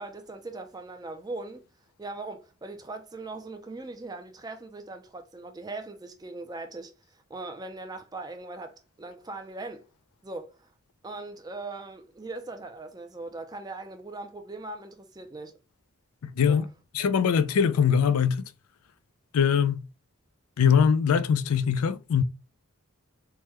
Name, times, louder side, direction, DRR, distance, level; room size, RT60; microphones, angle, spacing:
voice 1, 0.0-1.6 2.0-9.9 10.2-10.7 11.0-15.6 16.5-16.6, right 2 dB, 15° right, 0.4 m, -40 dB
voice 2, 16.2-16.6 16.9-18.4 19.3-19.8 20.6-22.2, left 7 dB, 85° left, 0.4 m, -22 dB
3.5 x 2.1 x 3.0 m
head